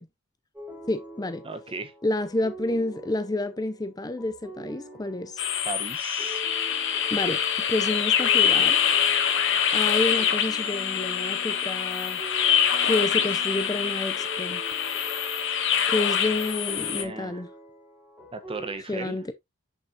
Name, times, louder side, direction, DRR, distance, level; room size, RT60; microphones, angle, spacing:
sound 1, 0.5-18.8, equal, 5° right, 4.1 m, -44 dB
voice 1, 0.9-1.4 2.0-5.4 7.1-7.4 7.7-8.8 9.7-12.2 12.8-14.6 15.9-17.5 18.9-19.3, left 2 dB, 15° left, 0.5 m, -29 dB
voice 2, 1.4-1.9 5.6-6.4 17.0-17.4 18.3-19.2, right 3 dB, 25° right, 1.1 m, -36 dB
sound 2, 5.4-17.0, left 8 dB, 55° left, 1.4 m, -25 dB
8.3 x 6.7 x 2.8 m
head